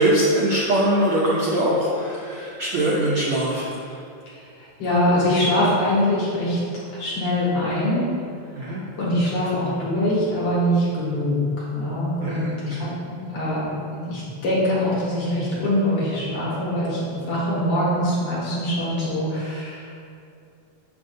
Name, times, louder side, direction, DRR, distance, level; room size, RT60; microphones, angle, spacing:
voice 1, 0.0-3.8 8.5-8.8 12.2-12.9, right 1 dB, 80° right, -6 dB, 1.2 m, -22 dB
voice 2, 4.3-6.6 6.9-8.1 8.6-11.4 11.7-20.1, left 1 dB, 55° left, -8 dB, 2.1 m, -23 dB
6.5 x 6.2 x 2.6 m, 2.5 s
omnidirectional pair, 3.3 m